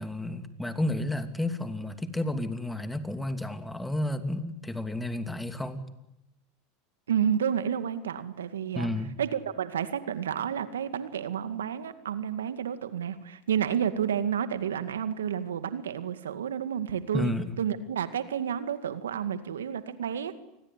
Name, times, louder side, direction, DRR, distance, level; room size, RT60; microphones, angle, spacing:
voice 1, 0.0-5.8 8.7-9.2 17.1-17.5, left 1 dB, 5° left, 9 dB, 2.9 m, -31 dB
voice 2, 7.1-8.9 9.2-20.4, right 8 dB, 85° right, 11 dB, 2.1 m, -30 dB
28.5 x 20.5 x 10.0 m, 0.89 s
hypercardioid pair, 95°, 0 cm